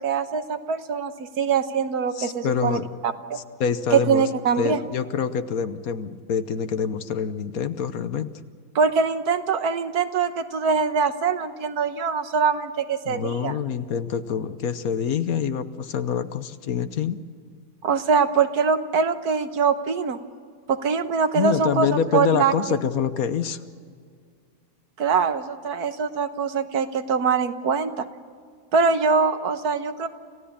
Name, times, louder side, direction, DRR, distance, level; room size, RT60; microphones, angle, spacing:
voice 1, 0.0-2.8 3.0-3.4 3.9-4.8 8.7-13.6 17.8-20.2 20.7-22.5 25.0-28.1 28.7-30.1, right 5 dB, 75° right, 9 dB, 1.6 m, -23 dB
voice 2, 2.1-2.9 3.6-4.3 4.6-8.3 13.1-17.2 21.3-23.6, left 7 dB, 65° left, 12 dB, 1.3 m, -26 dB
28.5 x 16.0 x 8.6 m, 2.1 s
omnidirectional pair, 1.7 m